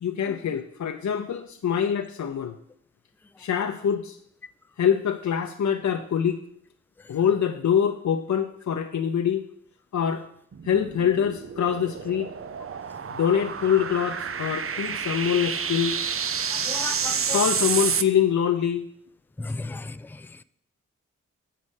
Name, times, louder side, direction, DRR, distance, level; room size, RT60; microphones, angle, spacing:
voice 1, 0.0-2.6 3.4-4.2 4.8-6.4 7.1-9.4 9.9-10.2 10.6-12.3 13.1-16.0 17.3-18.9, left 8 dB, 70° left, 0.6 m, -24 dB
sound 1, 10.5-18.0, right 6 dB, 50° right, 0.5 m, -29 dB
voice 2, 16.5-17.4 19.4-20.2, left 3 dB, 5° left, 0.3 m, -35 dB
7.4 x 5.6 x 6.4 m
cardioid pair, 45°, 30 cm